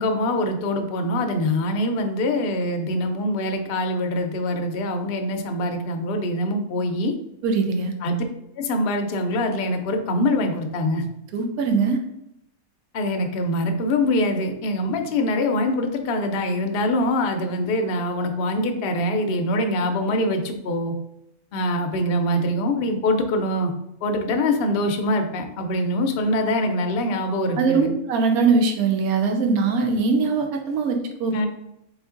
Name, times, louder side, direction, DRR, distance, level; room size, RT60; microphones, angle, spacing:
voice 1, 0.0-7.1 8.0-8.2 8.6-11.0 12.9-20.9 21.5-23.7 24.0-27.9 31.3-31.5, left 1 dB, 60° left, 4 dB, 0.7 m, -24 dB
voice 2, 7.4-7.9 11.3-12.0 27.6-31.3, right 4 dB, 90° right, 4 dB, 1.2 m, -21 dB
4.1 x 3.2 x 3.7 m, 0.80 s
omnidirectional pair, 1.5 m